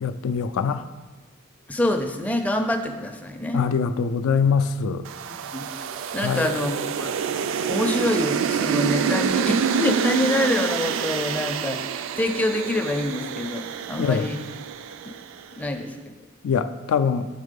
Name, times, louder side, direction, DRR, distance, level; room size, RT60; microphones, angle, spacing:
voice 1, 0.0-0.8 3.5-5.0 6.2-6.4 14.0-14.3 16.4-17.3, left 6 dB, 80° left, 11 dB, 0.3 m, -23 dB
voice 2, 1.7-3.6 5.3-5.7 6.1-7.1 7.6-14.4 15.0-15.1 15.6-16.0, left 1 dB, 5° left, 4 dB, 0.4 m, -26 dB
sound 1, 5.1-15.4, right 7 dB, 65° right, 0.3 m, -27 dB
7.3 x 3.9 x 5.2 m, 1.2 s
head